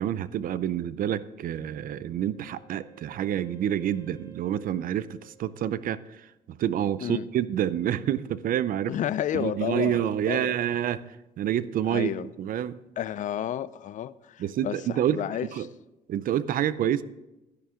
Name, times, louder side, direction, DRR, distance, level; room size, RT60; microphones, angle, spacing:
voice 1, 0.0-8.9 9.3-11.0 11.4-12.8 14.4-15.2 15.5-15.7 16.1-17.0, right 10 dB, 55° right, 16 dB, 0.6 m, -28 dB
Wind instrument woodwind instrument, 1.5-6.4, right 6 dB, 15° right, 2.9 m, -56 dB
voice 2, 8.9-10.5 11.9-12.3 13.0-15.5 16.8-16.9, left 11 dB, 50° left, 16 dB, 0.5 m, -31 dB
11.5 x 11.0 x 3.7 m, 0.99 s
cardioid pair, 110°, 17 cm